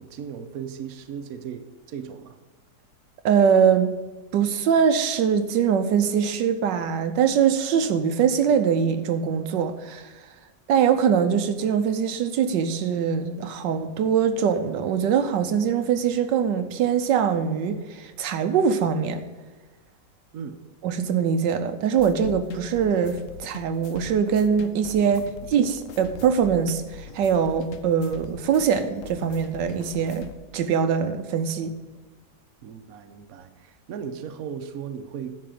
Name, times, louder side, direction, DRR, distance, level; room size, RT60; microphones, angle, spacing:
voice 1, 0.0-2.4 20.3-20.6 32.6-35.4, right 7 dB, 60° right, 7 dB, 1.1 m, -37 dB
voice 2, 3.2-3.9 4.3-10.1 10.7-19.2 20.8-31.7, right 7 dB, 90° right, 8 dB, 1.4 m, -22 dB
sound 1, 22.0-30.3, left 7 dB, 60° left, 0.9 m, -43 dB
10.5 x 4.2 x 7.8 m, 1.2 s
omnidirectional pair, 1.9 m